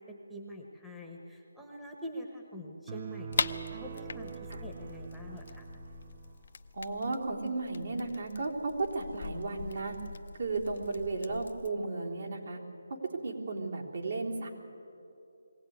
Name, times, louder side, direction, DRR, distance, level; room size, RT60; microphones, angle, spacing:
voice 1, 0.0-5.7, equal, ahead, -3 dB, 1.3 m, -45 dB
sound 1, 2.9-6.4, right 8 dB, 30° right, 0.6 m, -44 dB
sound 2, 3.3-11.7, left 5 dB, 50° left, 0.8 m, -41 dB
voice 2, 6.7-9.9 10.4-12.6 13.2-14.5, right 3 dB, 60° right, -1 dB, 3.5 m, -34 dB
22.0 x 16.5 x 9.5 m, 2.8 s
figure-of-eight pair, 165°, 0 cm